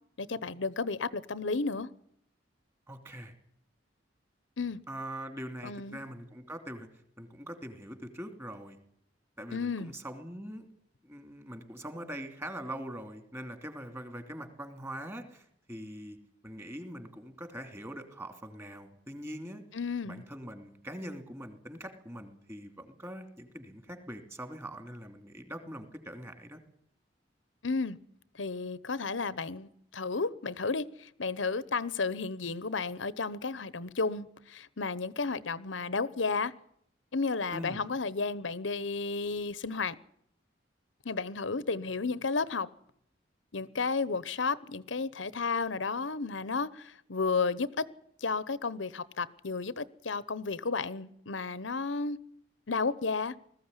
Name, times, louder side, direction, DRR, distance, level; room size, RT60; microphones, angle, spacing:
voice 1, 0.2-1.9 4.6-4.8 5.6-6.0 9.5-9.9 19.7-20.2 27.6-28.0 28.4-36.5 37.1-40.0 41.0-42.7 43.5-47.8 48.2-52.2 52.7-53.3, left 4 dB, 90° left, 18 dB, 1.0 m, -32 dB
voice 2, 2.9-3.3 4.9-6.9 7.2-8.8 9.4-10.7 11.0-16.2 16.4-19.6 20.0-26.6 37.5-37.8, equal, 15° right, 8 dB, 2.8 m, -43 dB
20.5 x 14.5 x 9.8 m, 0.70 s
head